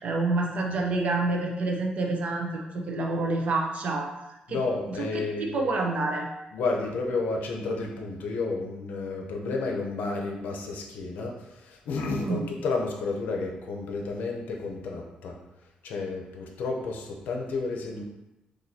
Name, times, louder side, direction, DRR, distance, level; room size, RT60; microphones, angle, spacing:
voice 1, 0.0-4.1 4.5-4.6 5.0-6.3 12.2-12.5, right 2 dB, 55° right, 1 dB, 0.6 m, -28 dB
voice 2, 4.5-5.7 6.5-11.3 11.6-15.3 15.8-18.0, left 3 dB, 85° left, 2 dB, 0.6 m, -31 dB
4.1 x 2.6 x 2.7 m, 0.94 s
cardioid pair, 125°, 3 cm